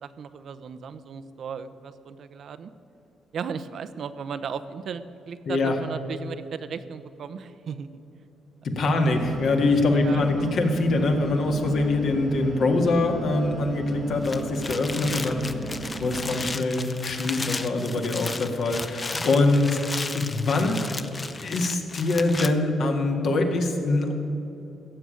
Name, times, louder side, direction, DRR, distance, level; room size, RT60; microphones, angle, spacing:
voice 1, 0.0-2.7 3.3-8.0 8.8-9.0 9.9-10.6 17.9-18.1 19.3-19.4, right 6 dB, 60° right, 12 dB, 0.7 m, -36 dB
voice 2, 5.5-5.8 8.6-15.5 16.0-19.8 20.1-20.8 21.4-24.1, left 2 dB, 65° left, 3 dB, 1.9 m, -24 dB
sound 1, 9.1-16.6, right 3 dB, 30° right, 0.9 m, -36 dB
sound 2, 14.1-22.5, left 3 dB, 30° left, 0.7 m, -34 dB
15.5 x 6.9 x 9.0 m, 2.9 s
cardioid pair, 85°, 0 cm